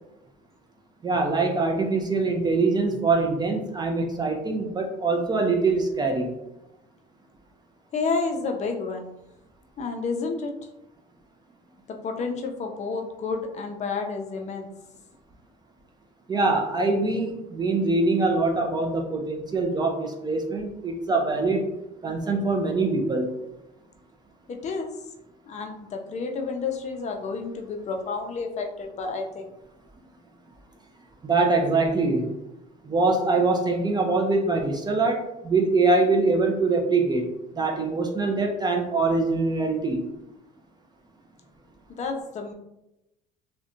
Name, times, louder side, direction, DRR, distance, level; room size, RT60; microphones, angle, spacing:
voice 1, 1.0-6.3 16.3-21.6 22.0-23.4 31.2-32.3 32.8-40.1, right 3 dB, 20° right, 1 dB, 0.4 m, -23 dB
voice 2, 7.9-9.1 9.8-10.5 11.9-14.7 24.5-24.9 25.5-29.5 41.9-42.5, left 4 dB, 35° left, 3 dB, 0.5 m, -30 dB
2.6 x 2.1 x 2.5 m, 0.90 s
supercardioid pair, 95°, 20 cm